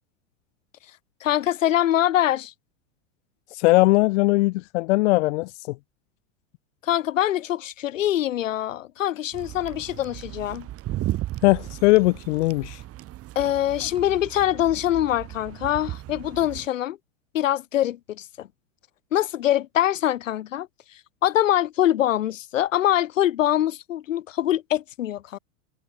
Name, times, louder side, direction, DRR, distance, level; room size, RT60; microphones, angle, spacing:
voice 1, 1.2-2.5 6.8-10.7 13.3-17.0 17.3-18.5 19.1-20.7 21.2-25.4, left 12 dB, 90° left, 1.6 m, -24 dB
voice 2, 3.5-5.7 11.4-12.8, left 22 dB, 65° left, 0.7 m, -20 dB
sound 1, 9.3-16.7, right 15 dB, 35° right, 3.0 m, -35 dB
hypercardioid pair, 120°, 37 cm